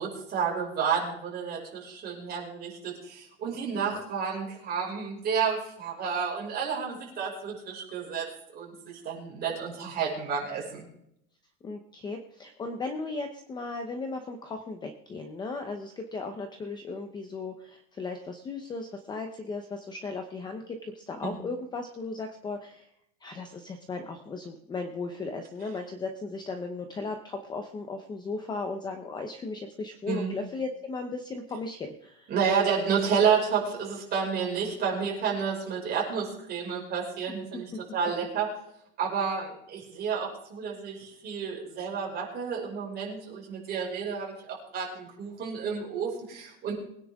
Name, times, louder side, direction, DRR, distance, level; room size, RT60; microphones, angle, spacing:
voice 1, 0.0-8.2 8.5-10.9 21.2-21.3 30.1-30.3 32.3-37.7 37.9-38.5 39.0-46.7, right 6 dB, 25° right, -2 dB, 5.7 m, -30 dB
voice 2, 11.6-22.9 23.2-32.3 37.7-37.8, left 3 dB, 10° left, 6 dB, 0.8 m, -36 dB
23.0 x 10.0 x 3.6 m, 0.75 s
supercardioid pair, 175°, 37 cm